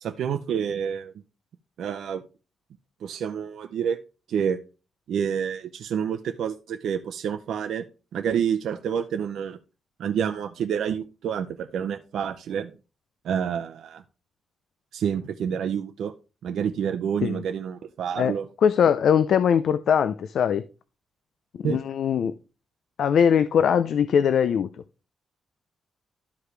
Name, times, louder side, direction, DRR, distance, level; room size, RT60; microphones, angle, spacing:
voice 1, 0.0-1.1 1.8-2.2 3.0-4.0 4.3-4.6 5.1-7.8 8.1-9.6 10.0-12.7 13.2-14.0 14.9-16.1 16.4-18.5 21.6-21.8, right 8 dB, 85° right, 0.6 m, -28 dB
voice 2, 18.6-20.6 21.6-22.4 23.0-24.7, left 8 dB, 70° left, 0.4 m, -21 dB
12.5 x 4.9 x 3.3 m
cardioid pair, 125°, 0 cm